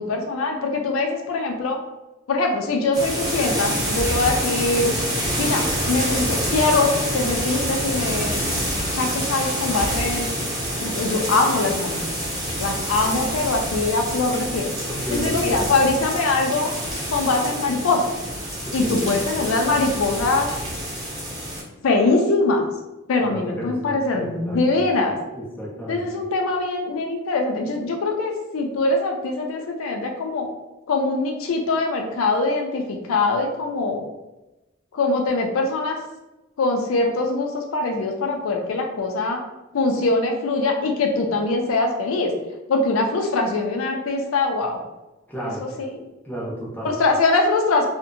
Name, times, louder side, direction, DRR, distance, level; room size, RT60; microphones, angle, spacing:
voice 1, 0.0-1.8 2.3-4.9 5.4-8.5 9.0-10.3 10.8-12.0 12.6-14.7 15.1-16.7 17.1-18.1 18.7-20.5 21.8-22.7 23.1-25.2 25.9-30.5 30.9-34.0 34.9-36.0 36.6-39.4 39.7-42.3 42.7-44.8 45.6-45.9 46.8-47.9, left 3 dB, 85° left, 3 dB, 0.4 m, -22 dB
sound 1, 2.9-21.6, equal, 20° right, 0.8 m, -27 dB
voice 2, 14.9-15.7 18.7-19.1 23.2-24.9 25.3-26.0 45.3-45.6 46.2-47.0, right 1 dB, 10° left, -6 dB, 0.6 m, -32 dB
2.6 x 2.1 x 2.5 m, 1.0 s
head